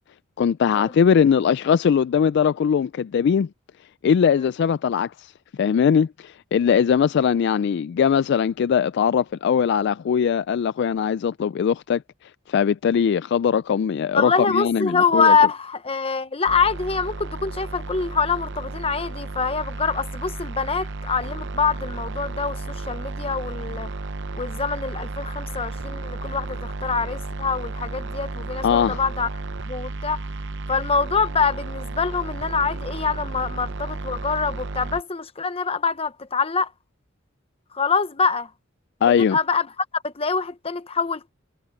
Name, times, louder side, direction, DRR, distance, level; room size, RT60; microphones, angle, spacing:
voice 1, 0.4-3.5 4.0-5.3 5.6-12.0 12.5-15.4 28.6-29.0 39.0-39.4, left 7 dB, 60° left, 0.3 m, -20 dB
voice 2, 14.1-23.9 24.3-29.3 29.7-30.2 30.7-36.7 37.7-38.5 39.0-39.7 39.9-41.3, left 5 dB, 30° left, 1.0 m, -24 dB
sound 1, 16.5-35.0, right 3 dB, 60° right, 0.8 m, -33 dB
head